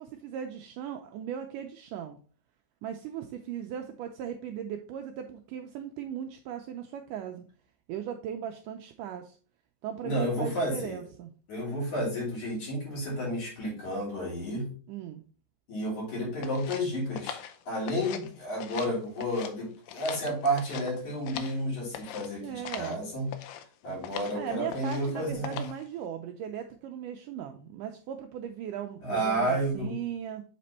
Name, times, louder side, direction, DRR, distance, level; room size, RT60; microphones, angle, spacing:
voice 1, 0.0-2.2 2.8-7.4 7.9-9.4 9.8-11.3 14.9-15.2 22.4-23.0 24.3-30.4, right 9 dB, 85° right, 5 dB, 1.9 m, -38 dB
voice 2, 10.0-11.0 11.5-14.7 15.7-17.4 17.7-23.3 23.8-25.6 29.0-30.0, equal, 55° left, -5 dB, 4.5 m, -31 dB
sound 1, 16.4-18.3 18.6-19.5 19.9-21.6 21.9-22.3 22.6-23.0 23.3-23.6 24.0-24.4 24.7-25.1 25.4-25.8, left 9 dB, 80° left, 2.2 m, -41 dB
7.4 x 4.3 x 4.0 m, 0.42 s
omnidirectional pair, 4.2 m